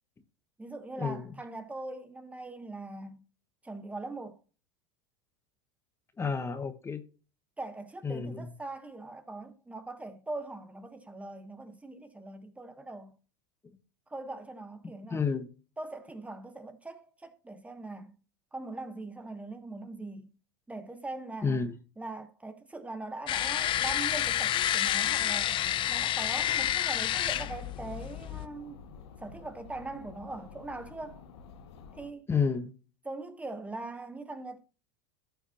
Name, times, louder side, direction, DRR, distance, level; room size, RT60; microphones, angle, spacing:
voice 1, 0.6-3.2 3.6-4.4 7.6-13.2 14.1-15.2 15.8-18.2 18.5-20.3 20.7-21.7 22.0-25.6 25.9-28.8 29.2-31.2 31.9-32.3 33.0-34.6, right 2 dB, 10° right, 1.0 m, -41 dB
voice 2, 6.2-7.0 8.0-8.5 15.1-15.5 21.4-21.7 32.3-32.7, left 5 dB, 20° left, 1.0 m, -30 dB
sound 1, 23.3-28.5, left 12 dB, 35° left, 0.5 m, -29 dB
sound 2, 27.0-32.1, left 6 dB, 80° left, 1.2 m, -50 dB
14.5 x 5.8 x 2.8 m
supercardioid pair, 115°, 14 cm